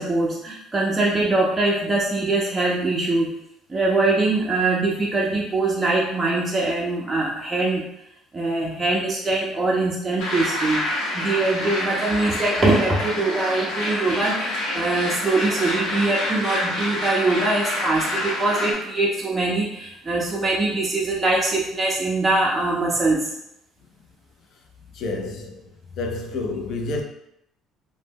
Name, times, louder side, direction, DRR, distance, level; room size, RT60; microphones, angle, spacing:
voice 1, 0.0-3.3 3.7-7.9 8.3-10.8 11.1-23.3, right 2 dB, 15° right, 0.4 m, -22 dB
sound 1, 10.2-18.7, left 1 dB, 90° left, 1.0 m, -27 dB
voice 2, 24.9-25.7 26.0-27.0, left 3 dB, 55° left, 0.4 m, -29 dB
2.1 x 2.0 x 3.3 m
cardioid pair, 140°, 0 cm